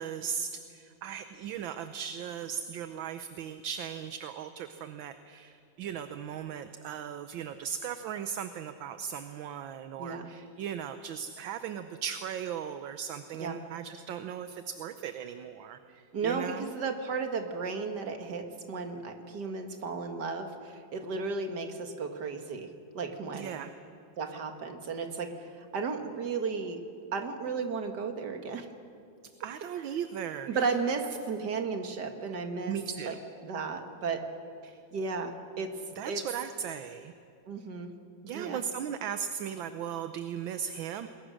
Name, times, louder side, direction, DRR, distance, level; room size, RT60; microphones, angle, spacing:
voice 1, 0.0-16.7 23.3-23.7 29.4-30.8 32.7-33.2 34.6-34.8 35.9-37.1 38.2-41.1, right 8 dB, 75° right, 9 dB, 1.6 m, -37 dB
voice 2, 16.1-23.6 24.2-26.8 27.1-28.7 30.5-32.8 33.1-33.2 33.4-34.2 34.9-35.7 36.1-36.2 37.5-37.9 38.3-38.6, right 4 dB, 55° right, 6 dB, 2.3 m, -34 dB
28.0 x 21.5 x 6.4 m, 2.7 s
omnidirectional pair, 2.2 m